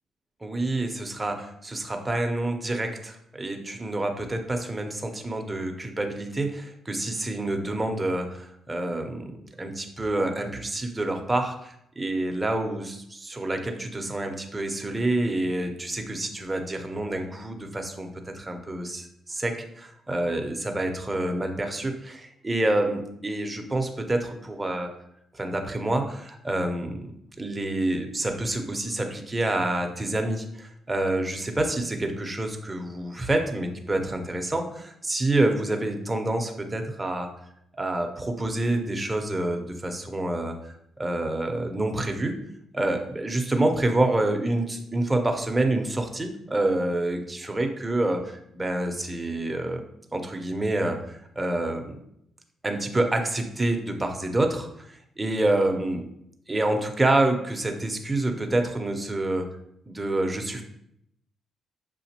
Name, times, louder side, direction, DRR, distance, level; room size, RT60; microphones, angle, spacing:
voice 1, 0.4-18.1 18.3-24.9 25.3-27.0 27.4-37.3 37.8-42.4 42.7-49.8 50.1-51.9 52.6-56.0 56.5-59.5 59.9-60.6, right 2 dB, 15° right, 4 dB, 0.7 m, -27 dB
6.6 x 2.5 x 2.8 m, 0.76 s
cardioid pair, 90°, 0 cm